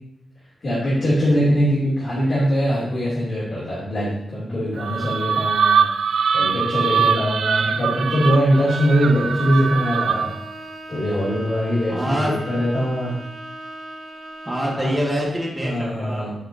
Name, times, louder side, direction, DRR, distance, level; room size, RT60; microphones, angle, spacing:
voice 1, 0.6-10.3 10.9-13.2 14.8-14.9 15.6-16.3, equal, 45° left, -10 dB, 2.8 m, -22 dB
sound 1, 4.8-10.5, right 6 dB, 75° right, 0.3 m, -22 dB
voice 2, 7.5-7.9 11.9-12.4 14.5-16.4, equal, 15° right, -3 dB, 1.8 m, -26 dB
Bowed string instrument, 8.5-15.0, right 1 dB, 40° right, 0.6 m, -38 dB
12.0 x 4.8 x 2.7 m, 0.80 s
wide cardioid pair, 150°, 0 cm